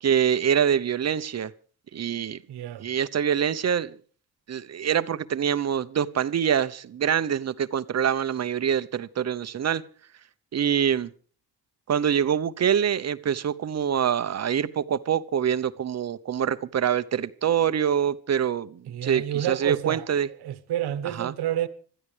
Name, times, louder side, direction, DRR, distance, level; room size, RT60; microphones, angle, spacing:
voice 1, 0.0-1.5 1.9-2.4 2.8-4.0 4.5-9.8 10.5-11.1 11.9-20.3 21.0-21.3, right 8 dB, 40° right, 0.9 m, -25 dB
voice 2, 2.5-2.8 18.9-20.1 20.4-21.7, right 11 dB, 85° right, 1.3 m, -29 dB
26.0 x 13.5 x 3.4 m
cardioid pair, 120°, 38 cm